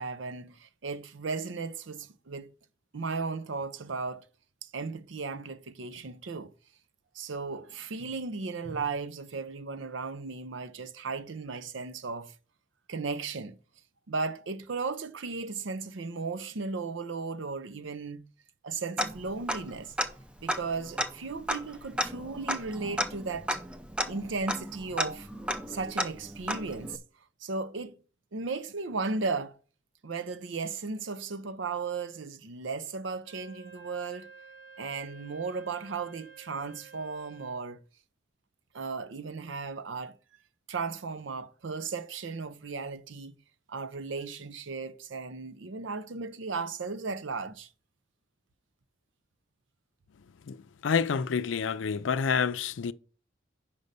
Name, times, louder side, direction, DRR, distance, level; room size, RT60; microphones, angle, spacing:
voice 1, 0.0-2.5 2.9-4.2 4.6-6.5 7.1-12.3 12.9-13.6 14.1-18.3 18.6-19.9 20.4-23.6 24.1-25.3 25.7-27.0 27.4-28.0 28.3-29.6 30.0-34.3 34.8-37.8 38.7-40.2 40.7-43.3 43.7-47.7, right 4 dB, 85° right, 0.6 m, -35 dB
Tick-tock, 19.0-19.7 20.0-20.1 20.5-27.0, equal, 5° right, 0.5 m, -33 dB
Wind instrument woodwind instrument, 33.2-37.7, right 4 dB, 55° right, 1.4 m, -52 dB
voice 2, 50.5-52.9, left 6 dB, 85° left, 0.4 m, -28 dB
5.4 x 5.3 x 6.6 m
head